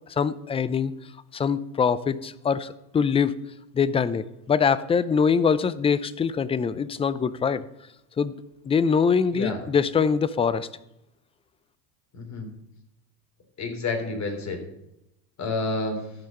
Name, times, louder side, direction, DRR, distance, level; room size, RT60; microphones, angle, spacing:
voice 1, 0.1-0.9 1.3-3.3 3.7-7.6 8.2-8.3 8.7-10.7, left 6 dB, 15° left, 17 dB, 0.4 m, -23 dB
voice 2, 12.1-12.5 13.6-14.6 15.4-16.0, left 3 dB, 35° left, 4 dB, 3.6 m, -29 dB
13.5 x 5.7 x 6.7 m, 0.88 s
hypercardioid pair, 95°, 48 cm